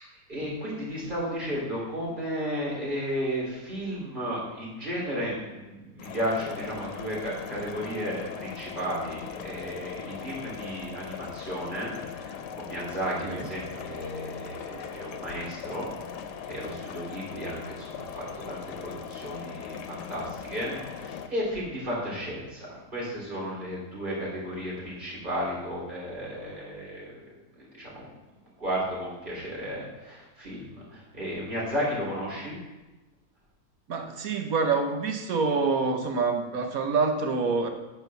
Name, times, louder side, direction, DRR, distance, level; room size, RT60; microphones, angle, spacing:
voice 1, 0.0-16.1 16.5-27.2 27.6-28.1 28.6-32.6, equal, 30° right, -6 dB, 3.6 m, -34 dB
sound 1, 6.0-21.3, left 8 dB, 90° left, 1.3 m, -40 dB
voice 2, 33.9-37.7, right 4 dB, 65° right, 5 dB, 1.3 m, -26 dB
9.4 x 4.7 x 6.9 m, 1.1 s
omnidirectional pair, 1.7 m